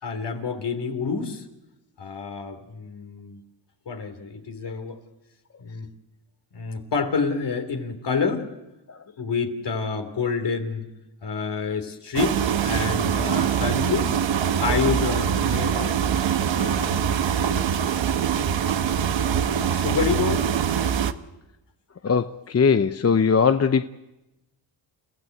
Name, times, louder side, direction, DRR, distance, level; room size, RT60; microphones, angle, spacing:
voice 1, 0.0-1.5 2.0-3.4 3.8-5.0 5.6-5.9 6.5-8.5 9.2-10.9 11.2-14.2 14.6-15.9 16.5-17.5 19.7-20.5, left 5 dB, 60° left, 6 dB, 3.3 m, -28 dB
sound 1, 12.2-21.1, right 8 dB, 75° right, 1.1 m, -23 dB
voice 2, 22.0-23.8, left 6 dB, 35° left, 9 dB, 0.8 m, -20 dB
30.0 x 15.0 x 7.9 m, 0.98 s
cardioid pair, 75°, 46 cm